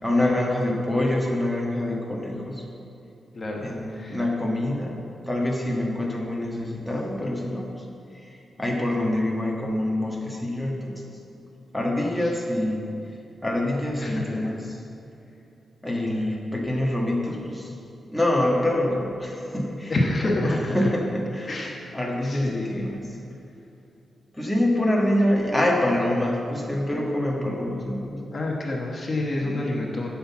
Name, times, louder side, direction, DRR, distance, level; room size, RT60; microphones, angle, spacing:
voice 1, 0.0-2.6 3.6-5.0 5.3-7.7 8.2-11.0 11.7-12.8 13.4-14.8 15.8-17.7 18.1-20.0 20.2-23.1 24.3-28.3 29.4-29.6, left 1 dB, ahead, -3 dB, 1.4 m, -26 dB
voice 2, 3.3-4.2 14.0-14.5 19.9-20.9 21.5-21.8 22.2-22.9 28.3-30.1, left 2 dB, 35° left, -1 dB, 1.2 m, -28 dB
10.0 x 5.8 x 7.1 m, 2.7 s
wide cardioid pair, 140°, 0 cm